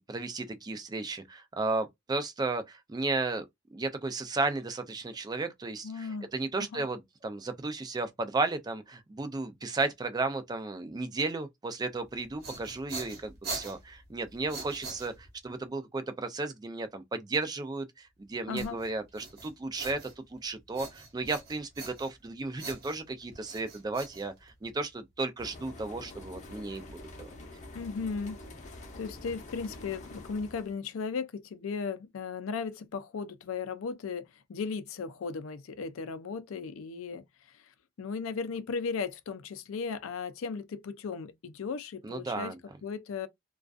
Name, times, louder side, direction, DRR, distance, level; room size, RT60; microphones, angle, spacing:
voice 1, 0.0-3.5 3.7-27.3 42.0-42.6, right 3 dB, 20° right, 0.3 m, -34 dB
voice 2, 5.8-6.3 6.6-6.9 18.5-18.8 27.7-28.4 28.7-37.7 38.0-42.6 42.8-43.3, left 5 dB, 90° left, 0.4 m, -36 dB
sound 1, 12.1-15.5 18.6-20.4 20.7-22.3 22.6-24.8, right 3 dB, 50° right, 1.0 m, -43 dB
sound 2, 25.4-30.8, left 2 dB, 40° left, 0.7 m, -46 dB
2.4 x 2.2 x 2.3 m
head